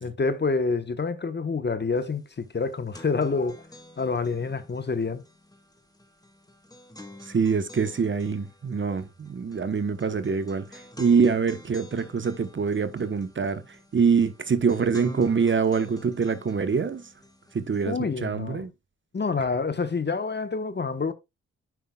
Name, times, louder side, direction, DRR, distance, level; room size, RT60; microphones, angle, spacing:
voice 1, 0.0-3.6 4.0-5.2 17.8-18.7 19.1-21.1, left 4 dB, 35° left, 1.0 m, -27 dB
sound 1, 2.0-2.1 2.4-18.0, left 1 dB, 10° left, 1.6 m, -49 dB
voice 2, 7.3-13.6 13.9-17.0 17.5-18.7, right 5 dB, 40° right, 0.9 m, -25 dB
9.3 x 5.6 x 2.3 m
supercardioid pair, 45°, 31 cm